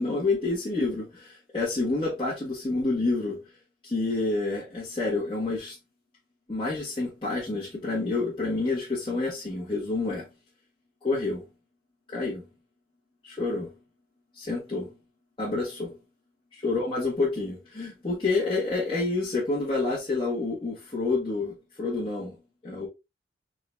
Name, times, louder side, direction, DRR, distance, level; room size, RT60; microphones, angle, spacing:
voice 1, 0.0-3.4 3.8-5.8 6.5-10.3 11.0-11.4 12.1-12.4 13.2-13.7 14.3-14.9 15.4-15.9 16.6-22.3 22.6-22.9, left 3 dB, 25° left, 1.5 m, -28 dB
3.9 x 2.8 x 3.3 m
head